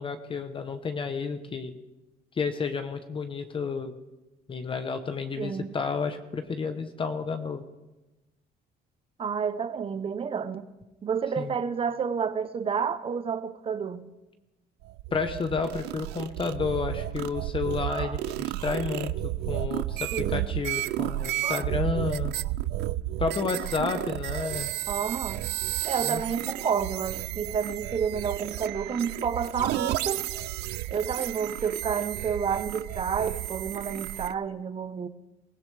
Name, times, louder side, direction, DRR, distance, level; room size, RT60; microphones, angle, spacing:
voice 1, 0.0-1.7 2.3-3.9 4.5-7.7 11.4-11.6 15.1-19.1 19.5-22.3 23.2-24.7 26.0-26.2, left 5 dB, 30° left, 1.0 m, -31 dB
voice 2, 5.4-5.7 9.2-10.7 11.0-14.1 17.9-18.2 20.1-20.5 21.4-21.7 24.3-24.6 24.9-25.4 25.9-30.3 30.9-35.1, right 6 dB, 35° right, 0.9 m, -30 dB
sound 1, 14.8-34.3, right 15 dB, 80° right, 0.5 m, -32 dB
23.0 x 16.0 x 3.4 m
cardioid pair, 110°, 17 cm